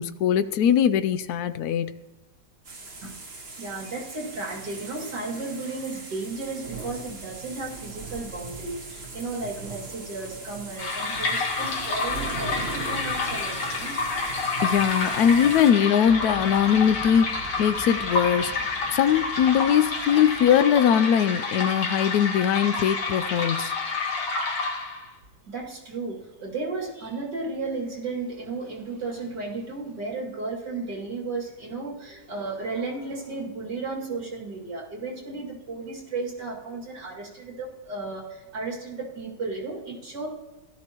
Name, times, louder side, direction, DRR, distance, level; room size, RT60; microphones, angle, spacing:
voice 1, 0.0-2.0 14.6-18.5 18.9-23.7, left 9 dB, 70° left, 12 dB, 1.0 m, -21 dB
sound 1, 2.6-15.7, right 4 dB, 40° right, 1.6 m, -39 dB
voice 2, 3.0-14.0 25.5-40.3, right 3 dB, 80° right, -3 dB, 3.0 m, -34 dB
sound 2, 10.8-25.1, left 3 dB, 85° left, 2.1 m, -29 dB
sound 3, 16.0-21.2, right 2 dB, 5° right, 1.4 m, -45 dB
16.5 x 12.5 x 3.0 m, 1.1 s
omnidirectional pair, 1.8 m